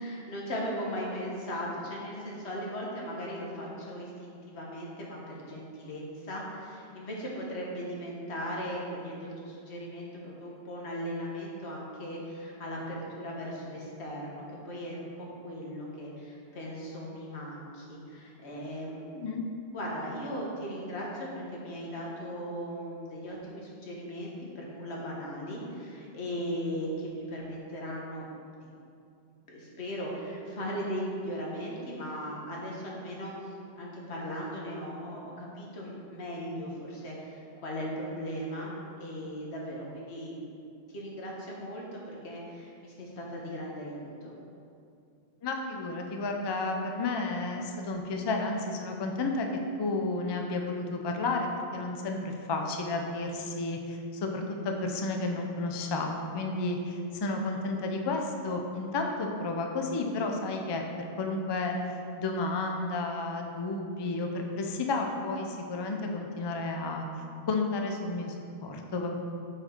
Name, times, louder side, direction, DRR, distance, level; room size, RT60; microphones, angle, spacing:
voice 1, 0.0-19.2 19.7-28.3 28.6-28.7 29.5-33.3 33.8-38.7 39.0-40.3 40.9-44.3, equal, 90° left, -3 dB, 1.4 m, -38 dB
voice 2, 19.1-19.4 45.4-49.5 49.8-61.8 62.2-67.1 67.5-68.3 68.6-69.1, left 3 dB, 40° left, 3 dB, 0.4 m, -32 dB
6.6 x 4.1 x 4.3 m, 2.5 s
omnidirectional pair, 1.1 m